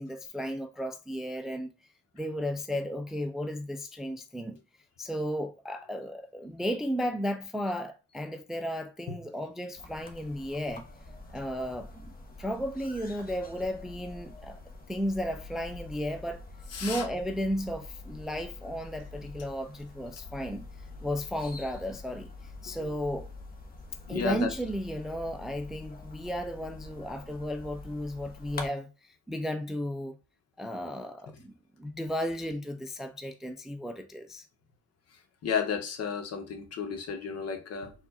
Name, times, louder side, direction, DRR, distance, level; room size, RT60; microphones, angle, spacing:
voice 1, 0.0-1.7 2.1-4.6 5.0-10.9 11.3-12.1 12.4-14.6 14.9-16.4 16.8-20.7 21.0-23.3 24.1-30.2 30.6-34.5, equal, ahead, 0.4 m, -34 dB
sound 1, 9.8-28.7, left 2 dB, 30° left, 1.0 m, -46 dB
voice 2, 16.7-17.1 22.8-22.9 24.1-24.5 35.4-37.9, left 6 dB, 55° left, 1.1 m, -33 dB
4.4 x 2.5 x 4.0 m
supercardioid pair, 80°, 30 cm